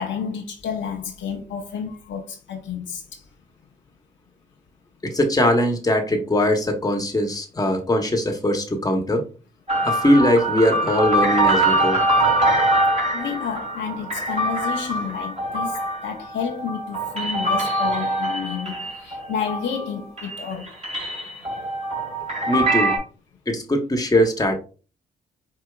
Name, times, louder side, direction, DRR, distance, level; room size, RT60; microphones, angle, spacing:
voice 1, 0.0-3.2 13.1-20.8, left 7 dB, 65° left, 0.7 m, -30 dB
voice 2, 5.0-9.3 9.8-12.0 22.5-23.0 23.5-24.5, left 1 dB, 15° left, 1.0 m, -21 dB
sound 1, 9.7-19.9 20.2-23.0, right 1 dB, 30° right, 1.7 m, -23 dB
4.5 x 2.7 x 2.3 m
hypercardioid pair, 45°, 21 cm